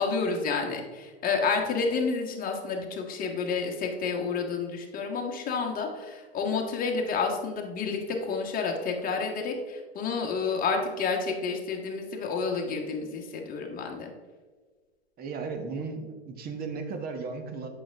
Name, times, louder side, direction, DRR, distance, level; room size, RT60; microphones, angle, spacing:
voice 1, 0.0-14.1, left 4 dB, 25° left, 1 dB, 1.5 m, -30 dB
voice 2, 15.2-17.7, right 4 dB, 30° right, 6 dB, 1.1 m, -35 dB
9.0 x 5.9 x 3.6 m, 1.4 s
figure-of-eight pair, 95°, 32 cm